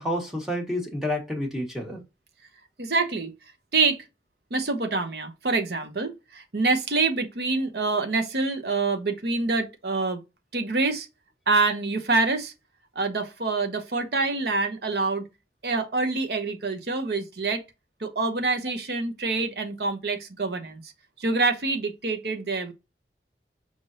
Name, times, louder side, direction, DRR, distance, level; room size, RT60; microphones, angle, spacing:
voice 1, 0.0-2.0, left 1 dB, 5° right, 1.1 m, -29 dB
voice 2, 2.8-3.3 3.7-4.0 4.5-10.2 10.5-11.1 11.5-12.5 13.0-15.3 15.6-17.6 18.0-20.9 21.2-22.7, right 3 dB, 65° right, 0.9 m, -26 dB
5.1 x 3.3 x 2.5 m
head